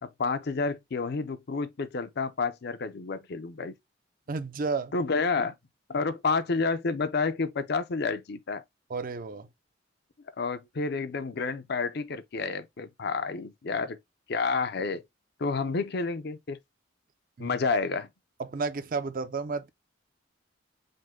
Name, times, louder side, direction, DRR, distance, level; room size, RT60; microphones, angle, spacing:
voice 1, 0.0-3.7 4.9-5.6 5.9-8.6 10.4-14.0 14.3-15.0 15.4-16.6 17.4-18.1, left 4 dB, 60° left, 0.6 m, -30 dB
voice 2, 4.3-4.9 8.9-9.5 17.4-17.6 18.4-19.7, right 4 dB, 50° right, 0.5 m, -32 dB
5.2 x 2.2 x 3.6 m
head